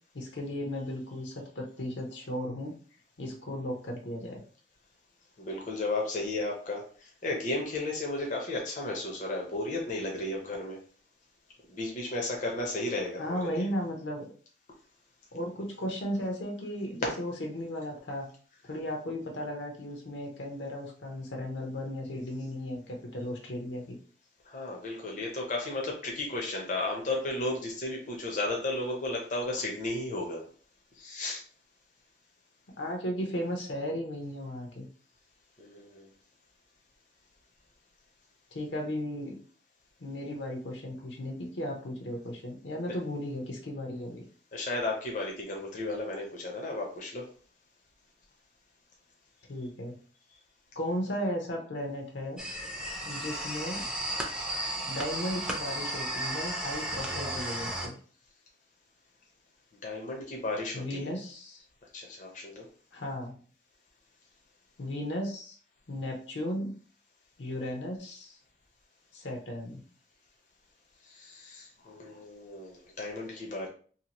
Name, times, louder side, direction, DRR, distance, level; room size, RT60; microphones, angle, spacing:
voice 1, 0.1-2.7 3.2-4.4 13.2-14.3 15.3-18.3 18.7-24.0 32.8-34.9 38.5-39.4 40.0-44.2 49.5-49.9 50.8-52.4 53.0-53.8 54.8-57.9 60.7-61.6 62.9-63.4 64.8-65.6 65.9-66.7 67.4-68.4 69.1-69.8, equal, 75° left, 1 dB, 0.7 m, -35 dB
voice 2, 5.4-6.8 7.2-10.8 11.7-13.7 24.5-30.4 31.0-31.4 35.6-36.1 44.5-47.3 59.8-61.1 61.9-62.6 71.1-73.7, left 2 dB, 45° left, -1 dB, 0.6 m, -34 dB
sound 1, 52.4-57.9, right 1 dB, 5° right, 0.4 m, -34 dB
2.8 x 2.4 x 2.9 m, 0.44 s
head